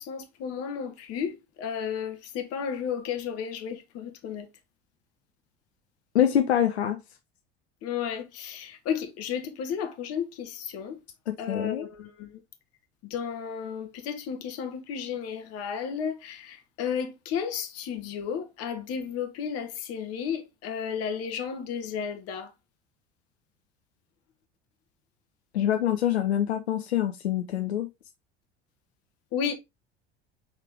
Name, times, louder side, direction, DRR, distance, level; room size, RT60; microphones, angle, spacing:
voice 1, 0.1-1.3 1.6-4.4 7.8-10.9 11.4-12.1 13.1-16.4 16.8-22.5 29.3-29.5, left 7 dB, 50° left, 1.1 m, -33 dB
voice 2, 6.1-7.0 11.3-11.9 25.5-27.9, left 10 dB, 80° left, 0.5 m, -25 dB
4.9 x 3.2 x 3.3 m
figure-of-eight pair, 70°, 32 cm